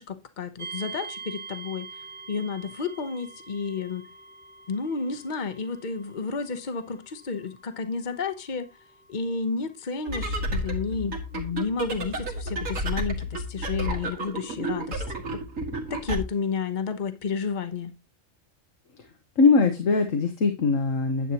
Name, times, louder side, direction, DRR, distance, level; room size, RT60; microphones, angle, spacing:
voice 1, 0.0-4.1 4.7-8.7 9.1-15.4 15.9-17.9, left 5 dB, 40° left, 1.1 m, -31 dB
sound 1, 0.6-15.4, right 4 dB, 40° right, 1.6 m, -46 dB
sound 2, 10.1-16.2, right 1 dB, 80° right, 2.2 m, -31 dB
voice 2, 19.4-21.3, left 4 dB, 85° left, 1.7 m, -21 dB
10.5 x 8.1 x 2.9 m
omnidirectional pair, 1.3 m